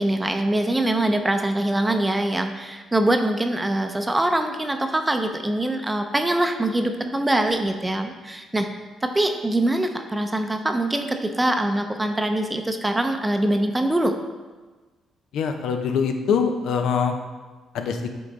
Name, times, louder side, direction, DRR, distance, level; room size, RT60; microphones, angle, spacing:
voice 1, 0.0-8.7 9.0-14.1, right 1 dB, 15° right, 6 dB, 0.5 m, -23 dB
voice 2, 15.3-17.1 17.7-18.1, left 6 dB, 80° left, 6 dB, 0.7 m, -23 dB
8.1 x 3.8 x 4.0 m, 1.3 s
cardioid pair, 90°, 0 cm